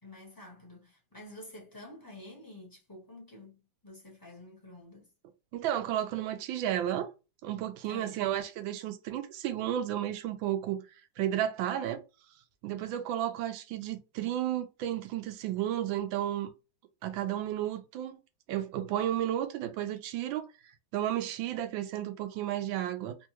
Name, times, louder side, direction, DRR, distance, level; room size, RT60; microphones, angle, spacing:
voice 1, 0.0-5.1 7.8-8.2, left 1 dB, 15° left, 0.9 m, -49 dB
voice 2, 5.5-7.1 7.4-10.8 11.2-12.0 12.6-16.5 17.0-18.2 18.5-20.5 20.9-23.2, right 11 dB, 75° right, 1.4 m, -32 dB
3.7 x 2.7 x 2.9 m
omnidirectional pair, 2.3 m